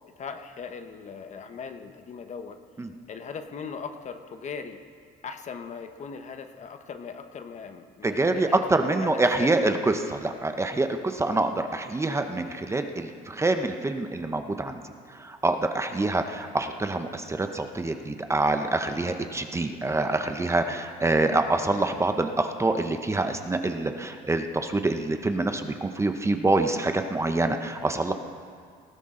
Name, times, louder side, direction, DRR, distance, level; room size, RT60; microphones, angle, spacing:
voice 1, 0.1-2.6 3.1-4.8 5.2-9.7, left 5 dB, 45° left, 7 dB, 1.0 m, -39 dB
voice 2, 8.0-28.1, right 2 dB, 15° right, 7 dB, 0.8 m, -26 dB
19.0 x 14.5 x 3.8 m, 2.1 s
cardioid pair, 110°, 17 cm